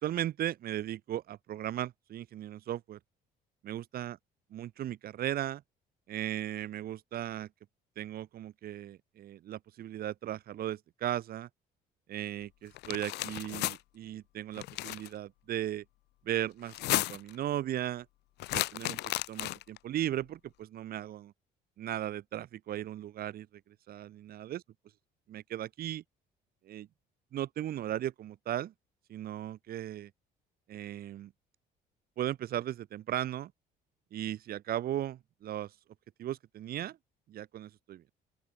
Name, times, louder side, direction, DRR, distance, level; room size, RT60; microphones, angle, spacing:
voice 1, 0.0-3.0 3.6-4.2 4.5-5.6 6.1-7.5 8.0-11.5 12.1-15.8 16.2-18.1 18.5-21.3 21.8-24.6 25.3-26.0 26.6-26.9 27.3-28.7 29.1-30.1 30.7-31.3 32.2-33.5 34.1-35.7 36.2-37.0 37.3-38.0, right 12 dB, 65° right, 4.6 m, -37 dB
Shaking a skittles bag, 12.7-13.8 14.5-15.1 16.6-17.3 18.4-19.8, left 18 dB, 80° left, 1.9 m, -33 dB
open air
cardioid pair, 110°, 17 cm